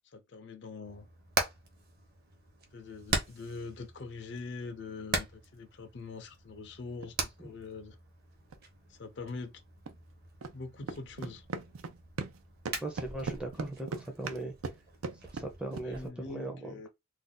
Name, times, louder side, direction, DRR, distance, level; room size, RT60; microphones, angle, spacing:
voice 1, 0.1-1.1 2.7-8.0 8.9-9.5 10.5-11.4 15.8-16.9, left 3 dB, 55° left, 0.5 m, -43 dB
Hammer, 0.8-16.1, right 3 dB, 50° right, 0.8 m, -41 dB
sound 1, 6.9-7.1 8.5-8.6 9.9-10.0 10.4-10.6 10.8-12.4 12.7-15.9, right 4 dB, 90° right, 0.5 m, -39 dB
voice 2, 12.8-14.5 15.3-16.8, right 2 dB, 5° right, 0.5 m, -38 dB
2.6 x 2.2 x 3.7 m
head